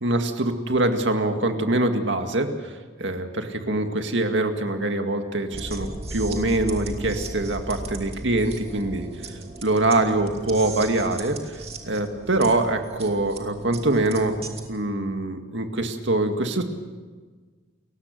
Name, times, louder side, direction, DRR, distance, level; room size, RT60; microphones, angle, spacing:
voice 1, 0.0-9.1 9.6-11.6 11.9-14.3 14.7-16.6, right 2 dB, 70° right, 5 dB, 2.1 m, -24 dB
sound 1, 5.5-14.6, right 2 dB, 30° right, 2.6 m, -36 dB
29.0 x 16.0 x 6.7 m, 1.4 s
head